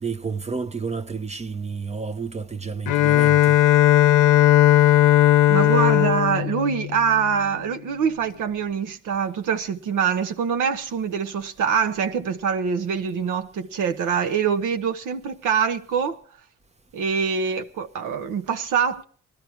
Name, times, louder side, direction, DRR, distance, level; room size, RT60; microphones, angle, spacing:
voice 1, 0.0-3.6, right 5 dB, 20° right, 0.7 m, -30 dB
Bowed string instrument, 2.9-7.6, left 13 dB, 85° left, 0.7 m, -17 dB
voice 2, 5.5-16.2 16.9-19.0, right 6 dB, 85° right, 1.3 m, -24 dB
18.5 x 12.5 x 4.6 m
cardioid pair, 90°, 30 cm